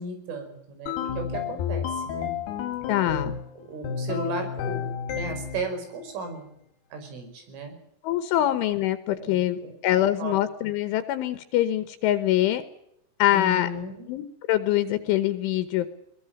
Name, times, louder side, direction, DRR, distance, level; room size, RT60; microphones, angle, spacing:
voice 1, 0.0-2.3 2.8-3.4 3.7-6.5 6.9-7.8 9.2-10.4 13.3-14.1, right 2 dB, 75° right, 7 dB, 7.6 m, -35 dB
sound 1, 0.9-3.5 3.8-5.7, left 7 dB, 65° left, 3.4 m, -31 dB
voice 2, 2.9-3.3 8.0-12.6 13.2-13.7 14.1-15.9, left 13 dB, 80° left, 11 dB, 3.5 m, -24 dB
21.5 x 20.5 x 9.0 m, 0.77 s
omnidirectional pair, 5.7 m